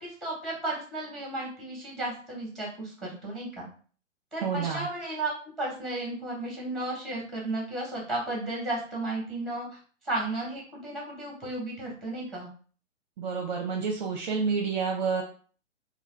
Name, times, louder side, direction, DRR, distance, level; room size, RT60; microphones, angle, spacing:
voice 1, 0.0-3.7 4.3-5.3 5.6-9.7 10.0-12.5, right 2 dB, ahead, -2 dB, 1.1 m, -34 dB
voice 2, 4.4-4.9 13.2-15.2, right 5 dB, 35° right, 1 dB, 0.6 m, -29 dB
3.3 x 2.3 x 3.2 m, 0.42 s
figure-of-eight pair, 120°, 38 cm